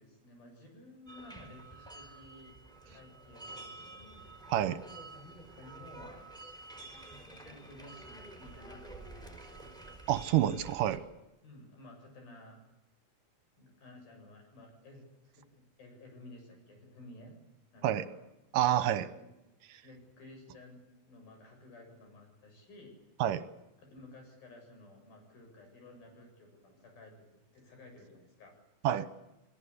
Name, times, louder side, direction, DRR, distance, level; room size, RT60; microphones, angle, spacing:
voice 1, 0.0-2.5 2.8-4.3 5.6-6.3 7.3-9.6 11.4-12.6 13.6-17.3 17.7-18.3 18.8-19.3 19.8-20.8 21.0-22.9 23.8-27.3 27.5-28.5, left 2 dB, 85° left, 3 dB, 9.1 m, -54 dB
sound 1, 1.1-11.0, right 2 dB, ahead, 4.6 m, -49 dB
voice 2, 10.1-11.0 17.8-18.1 18.5-19.1 23.2-23.4 28.8-29.1, right 12 dB, 75° right, 13 dB, 2.6 m, -28 dB
29.5 x 18.5 x 8.4 m, 0.98 s
omnidirectional pair, 4.1 m